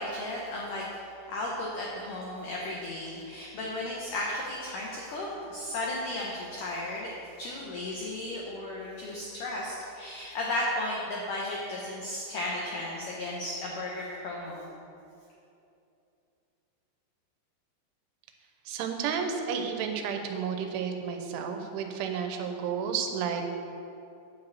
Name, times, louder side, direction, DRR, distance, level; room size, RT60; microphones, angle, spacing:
voice 1, 0.0-7.1 7.4-14.7, left 1 dB, 90° left, -4 dB, 1.8 m, -34 dB
voice 2, 18.7-23.5, right 6 dB, 90° right, 5 dB, 3.3 m, -32 dB
9.2 x 4.9 x 7.6 m, 2.7 s
omnidirectional pair, 5.3 m